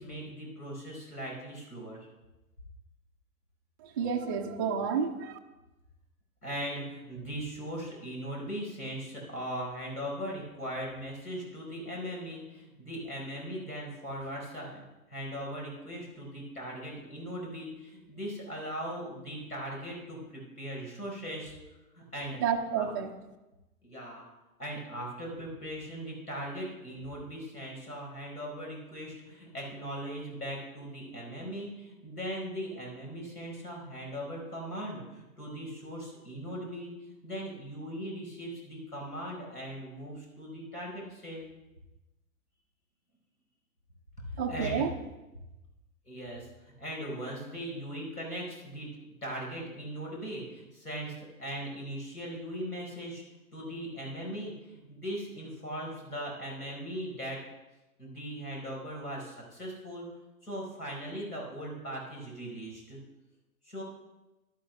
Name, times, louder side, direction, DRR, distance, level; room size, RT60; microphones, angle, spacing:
voice 1, 0.0-2.1 6.4-14.8 15.1-21.5 21.9-22.4 22.8-22.9 23.8-24.3 24.6-41.5 44.2-44.8 46.0-48.9 49.2-53.2 53.5-57.4 58.0-60.1 60.4-63.0 63.6-63.8, equal, 85° left, -2 dB, 4.7 m, -39 dB
voice 2, 3.8-5.4 22.4-23.1 44.4-44.9, right 7 dB, 15° right, 0 dB, 0.3 m, -30 dB
12.0 x 11.5 x 3.4 m, 1.0 s
figure-of-eight pair, 105°, 45 cm